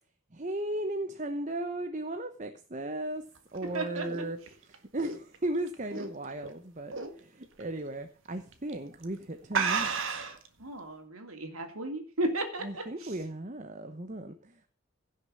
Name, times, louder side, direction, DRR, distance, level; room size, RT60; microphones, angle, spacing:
voice 1, 0.3-3.2 3.5-9.9 12.6-14.7, right 1 dB, 35° right, 7 dB, 1.0 m, -36 dB
sound 1, 3.4-6.5 6.9-7.2 7.6-7.7 8.5-8.7 9.0-9.1 9.5-10.5, right 5 dB, 65° right, 1.8 m, -32 dB
voice 2, 3.7-4.0 10.6-12.9, right 1 dB, 80° right, 5 dB, 2.9 m, -34 dB
16.5 x 6.7 x 6.3 m, 0.41 s
head